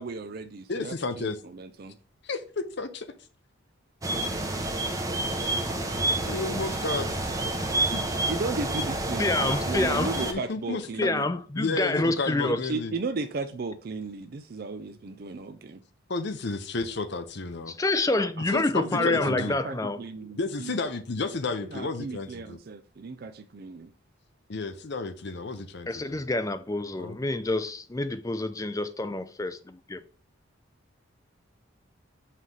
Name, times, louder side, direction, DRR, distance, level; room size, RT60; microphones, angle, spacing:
voice 1, 0.0-1.9 8.3-11.3 12.4-15.8 18.7-20.8 21.6-23.9, right 3 dB, 45° right, 0.4 m, -35 dB
voice 2, 0.7-1.4 2.2-3.1 5.8-7.3 7.9-8.0 10.1-11.1 11.6-12.9 16.1-17.7 18.5-19.6 20.4-22.6 24.5-26.2 27.0-27.2, left 3 dB, 55° left, 0.7 m, -32 dB
sound 1, 4.0-10.3, right 2 dB, 15° right, 0.7 m, -29 dB
voice 3, 9.2-10.1 11.0-12.6 17.7-20.0 25.9-30.0, left 2 dB, 15° left, 0.4 m, -27 dB
5.7 x 3.2 x 5.4 m
head